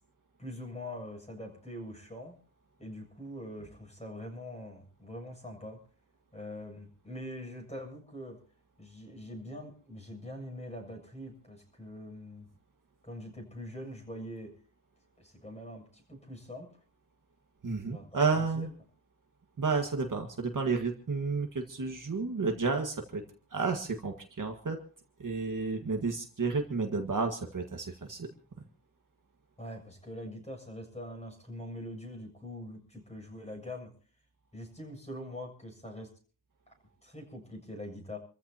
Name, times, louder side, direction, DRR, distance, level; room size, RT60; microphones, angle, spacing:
voice 1, 0.4-2.4 2.8-5.8 6.3-8.4 8.8-12.5 13.0-14.5 15.2-16.7 17.9-18.7 29.6-34.0 34.5-36.1 37.0-38.2, left 1 dB, 15° left, 2 dB, 7.2 m, -43 dB
voice 2, 17.6-18.7 19.6-23.2 23.5-24.8 25.2-28.3, right 4 dB, 45° right, 3 dB, 1.8 m, -31 dB
28.5 x 14.5 x 2.9 m, 0.40 s
wide cardioid pair, 120°, 42 cm